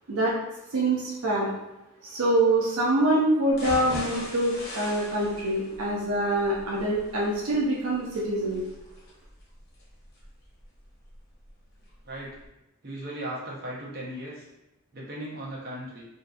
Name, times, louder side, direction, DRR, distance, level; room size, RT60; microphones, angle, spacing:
voice 1, 0.7-1.5 2.0-8.6, right 1 dB, 80° right, -4 dB, 0.5 m, -25 dB
sound 1, 3.5-11.5 11.9-12.0 12.4-12.5, left 1 dB, 50° left, 0.8 m, -41 dB
voice 2, 12.8-14.5 14.9-16.0, right 1 dB, 45° right, -5 dB, 0.8 m, -37 dB
2.6 x 2.5 x 2.3 m, 0.96 s
head